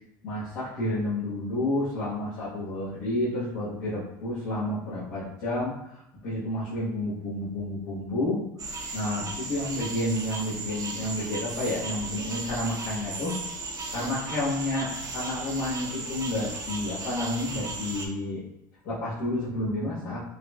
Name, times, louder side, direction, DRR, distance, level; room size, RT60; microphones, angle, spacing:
voice 1, 0.2-13.6 13.9-18.4 18.8-20.2, left 1 dB, 70° left, -10 dB, 1.3 m, -30 dB
sound 1, 8.6-18.1, right 3 dB, 35° right, 0.8 m, -36 dB
5.5 x 2.1 x 2.4 m, 0.81 s
supercardioid pair, 90°, 11 cm